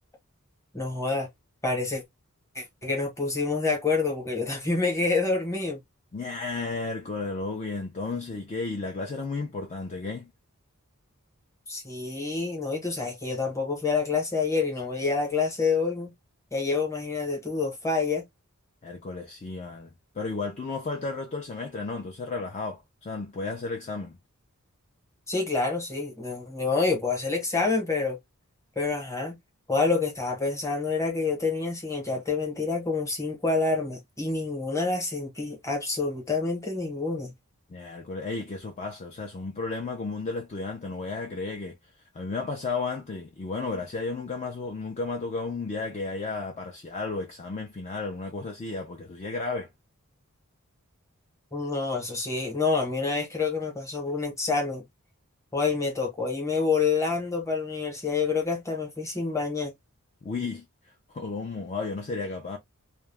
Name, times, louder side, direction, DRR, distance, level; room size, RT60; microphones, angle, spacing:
voice 1, 0.7-1.3 1.6-2.0 2.5-5.8 11.7-16.1 16.5-18.2 25.3-28.2 28.8-29.4 29.7-37.3 51.5-54.8 55.5-59.7, left 4 dB, 15° left, 0.9 m, -27 dB
voice 2, 6.1-10.3 18.8-19.9 20.1-24.2 37.7-41.8 42.1-49.7 60.2-62.6, left 3 dB, 30° left, 0.4 m, -33 dB
2.3 x 2.1 x 3.2 m
head